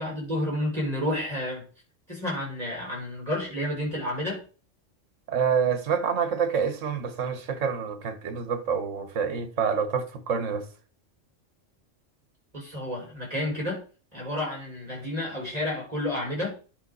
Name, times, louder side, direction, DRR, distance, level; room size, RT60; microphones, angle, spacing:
voice 1, 0.0-1.6 2.1-4.4 12.5-13.8 14.1-16.6, left 1 dB, 30° right, 5.6 m, -30 dB
voice 2, 5.3-10.6, right 6 dB, 75° right, 1.5 m, -27 dB
10.5 x 5.9 x 4.1 m
omnidirectional pair, 1.3 m